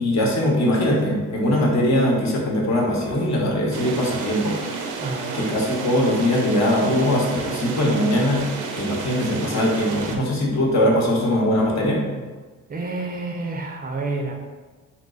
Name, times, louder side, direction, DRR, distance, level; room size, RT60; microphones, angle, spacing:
voice 1, 0.0-4.6 5.3-8.4 8.8-12.0, left 1 dB, 60° left, -2 dB, 0.9 m, -21 dB
sound 1, 3.7-10.2, right 4 dB, 85° right, 0.5 m, -31 dB
voice 2, 5.0-5.5 12.7-14.3, right 3 dB, 30° right, 2 dB, 0.4 m, -29 dB
2.9 x 2.2 x 3.9 m, 1.3 s
cardioid pair, 90°, 30 cm